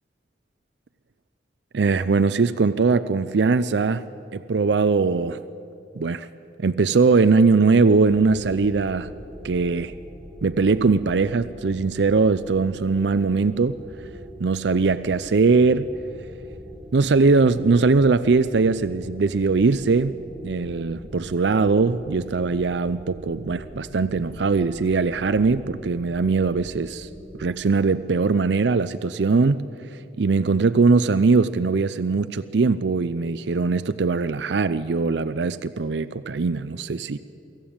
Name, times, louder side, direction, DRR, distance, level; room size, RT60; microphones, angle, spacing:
voice 1, 1.7-4.0 4.3-5.4 6.0-6.3 6.6-9.1 9.4-9.9 10.4-13.8 14.4-15.9 16.9-20.1 20.4-27.1 27.4-29.7 30.2-37.2, right 4 dB, 75° right, 0.5 m, -21 dB
sound 1, 8.1-27.5, equal, 5° right, 3.9 m, -42 dB
24.0 x 14.5 x 8.7 m
head